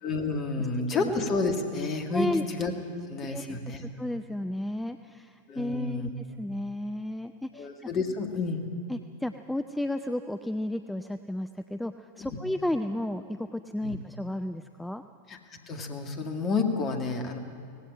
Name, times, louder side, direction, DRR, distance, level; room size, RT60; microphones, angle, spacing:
voice 1, 0.0-2.7 3.1-3.8 5.5-6.1 7.5-8.7 13.8-13.9 15.3-17.4, left 3 dB, 30° left, 4 dB, 2.2 m, -30 dB
voice 2, 2.1-2.5 3.2-3.6 3.9-7.9 8.9-15.0, left 1 dB, 5° left, 9 dB, 0.5 m, -33 dB
18.5 x 16.0 x 8.9 m, 2.3 s
figure-of-eight pair, 90°, 0 cm